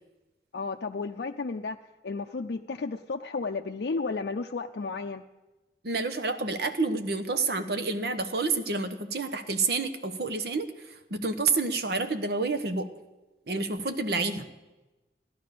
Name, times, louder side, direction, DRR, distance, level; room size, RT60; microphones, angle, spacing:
voice 1, 0.5-1.8 2.0-5.2, left 4 dB, 75° left, 3 dB, 0.5 m, -33 dB
voice 2, 5.8-10.7 11.1-12.9 13.5-14.5, right 3 dB, 65° right, 9 dB, 1.1 m, -29 dB
15.0 x 11.0 x 6.7 m, 1.1 s
head